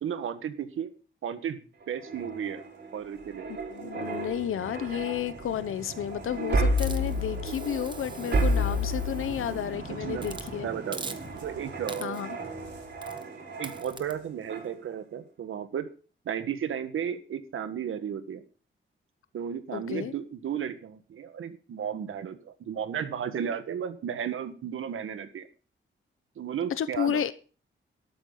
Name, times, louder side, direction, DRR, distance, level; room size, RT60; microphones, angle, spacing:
voice 1, 0.0-0.9 1.2-2.6 2.9-3.5 9.9-11.2 11.4-12.2 13.6-15.9 16.2-18.4 19.3-25.5 26.4-27.2, right 8 dB, 85° right, 1.5 m, -34 dB
sound 1, 1.8-14.1 14.5-14.7, equal, 60° right, 4.7 m, -32 dB
voice 2, 3.5-10.7 12.0-12.4 19.7-20.1 26.8-27.3, left 9 dB, 90° left, 1.0 m, -32 dB
Hiss, 6.8-9.7 10.2-10.5 10.9-11.5 11.9-12.3 13.0-13.3 13.6-14.1, right 3 dB, 25° right, 1.0 m, -43 dB
12.5 x 12.5 x 3.9 m
wide cardioid pair, 160°, 21 cm